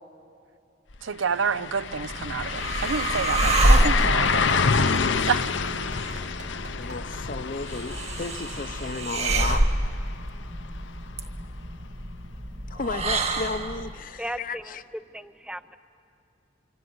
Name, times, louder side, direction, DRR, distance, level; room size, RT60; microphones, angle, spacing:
sound 1, 0.9-1.0 1.3-11.1 11.5-11.6 14.3-14.4, left 5 dB, 75° left, 0.8 m, -28 dB
voice 1, 1.0-5.0 5.3-5.4 6.0-6.1, right 5 dB, 90° right, 0.6 m, -29 dB
sound 2, 1.8-13.9, right 1 dB, 35° right, 1.4 m, -27 dB
Clapping, 3.5-7.2 8.8-8.9, right 4 dB, 60° right, 2.7 m, -47 dB
voice 2, 6.7-9.7 12.7-14.8, left 3 dB, 45° left, 0.7 m, -33 dB
voice 3, 14.2-14.8 15.1-15.8, right 1 dB, 5° right, 0.5 m, -36 dB
25.5 x 24.5 x 9.5 m
head